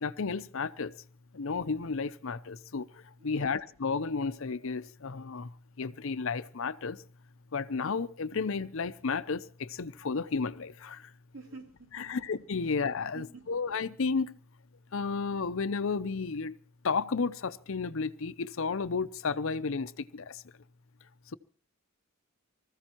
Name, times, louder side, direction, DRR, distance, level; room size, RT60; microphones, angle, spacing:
voice 1, 0.0-0.9 1.3-2.9 3.2-5.5 5.8-7.0 7.5-11.1 12.1-14.4 14.9-16.5 16.8-20.4, left 4 dB, 70° left, 0.6 m, -32 dB
voice 2, 3.2-3.5 11.3-12.1 13.1-13.4, right 3 dB, 75° right, 3.5 m, -48 dB
24.5 x 14.5 x 3.0 m
head